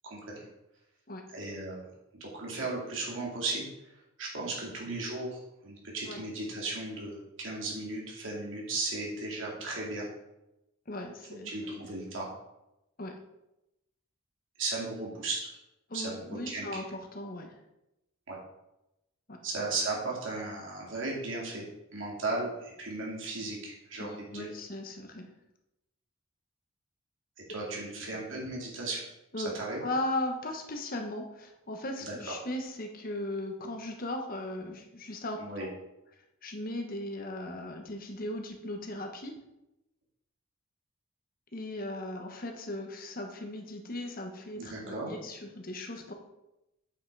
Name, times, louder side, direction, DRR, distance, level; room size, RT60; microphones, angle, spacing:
voice 1, 1.3-1.8 2.1-3.7 4.2-10.1 11.4-12.3 14.6-15.5 15.9-16.8 18.3-18.4 19.4-21.6 21.9-24.5 27.5-29.0 29.6-29.8 32.1-32.3 35.4-35.7 44.5-45.1, right 2 dB, 65° right, -3 dB, 2.7 m, -36 dB
voice 2, 10.9-11.9 13.0-13.2 15.9-17.5 19.3-19.4 24.0-25.3 27.7-28.0 29.3-29.5 29.8-35.7 36.4-39.4 41.5-46.1, left 1 dB, 45° left, 4 dB, 1.2 m, -37 dB
8.2 x 5.8 x 4.7 m, 0.92 s
head